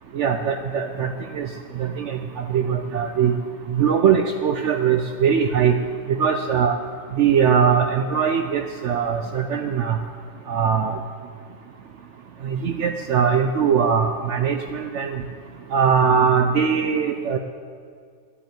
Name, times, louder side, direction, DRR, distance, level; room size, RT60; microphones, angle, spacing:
voice 1, 0.1-1.5 1.8-3.3 3.7-5.8 6.1-6.8 7.1-10.0 10.5-10.9 12.4-15.2 15.7-17.4, right 7 dB, 85° right, 7 dB, 0.6 m, -21 dB
10.5 x 8.2 x 9.0 m, 2.1 s
omnidirectional pair, 1.9 m